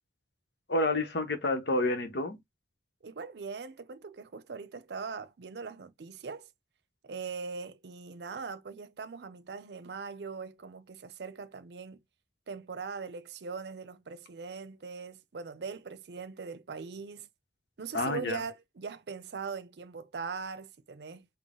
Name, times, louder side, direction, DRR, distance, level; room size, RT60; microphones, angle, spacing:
voice 1, 0.7-2.4 17.9-18.4, left 2 dB, 70° left, 0.9 m, -29 dB
voice 2, 3.0-6.5 7.0-12.0 12.5-17.3 17.8-21.3, right 5 dB, 70° right, 0.5 m, -41 dB
3.9 x 2.1 x 3.6 m
head